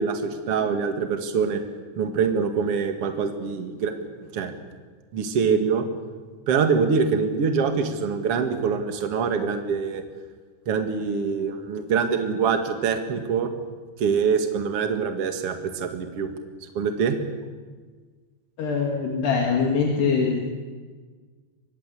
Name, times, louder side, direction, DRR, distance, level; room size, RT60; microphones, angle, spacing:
voice 1, 0.0-1.6 2.0-4.5 5.1-5.9 6.5-10.0 10.7-13.5 14.0-16.3 16.7-17.2, right 6 dB, 45° right, 6 dB, 2.1 m, -24 dB
voice 2, 18.6-20.4, left 5 dB, 65° left, 0 dB, 4.3 m, -23 dB
24.0 x 20.0 x 8.4 m, 1.5 s
omnidirectional pair, 5.2 m